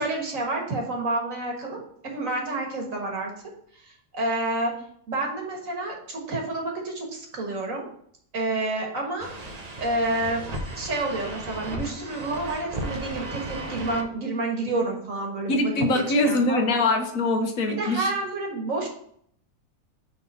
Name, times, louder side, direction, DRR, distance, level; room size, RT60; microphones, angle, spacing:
voice 1, 0.0-3.3 4.1-4.7 5.1-7.8 8.3-9.3 9.8-10.5 10.7-15.7 16.2-16.6 17.7-18.9, right 2 dB, 70° right, 0 dB, 1.9 m, -29 dB
sound 1, 9.2-14.0, right 1 dB, 40° right, 0.7 m, -35 dB
voice 2, 15.5-18.1, left 2 dB, 75° left, 5 dB, 1.4 m, -23 dB
5.8 x 3.7 x 5.4 m, 0.65 s
omnidirectional pair, 1.5 m